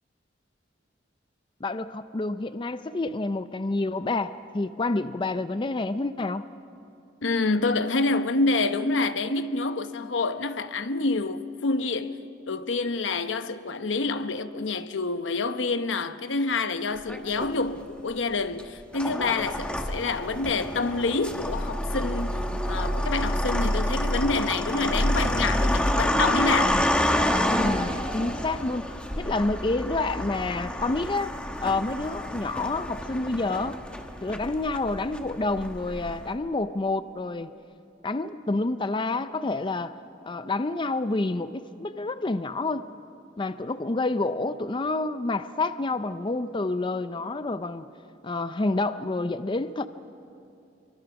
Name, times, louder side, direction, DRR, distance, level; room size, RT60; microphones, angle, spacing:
voice 1, 1.6-6.4 27.5-28.9 29.2-31.3 31.6-33.8 34.2-37.5 38.0-39.9 40.2-42.9 43.4-47.9 48.2-49.9, left 2 dB, 25° left, 0.5 m, -28 dB
voice 2, 7.2-12.2 12.5-26.8, left 3 dB, 80° left, 0.9 m, -27 dB
sound 1, 17.1-17.8 18.5-36.3, equal, 5° left, 1.2 m, -28 dB
24.5 x 24.0 x 6.0 m
head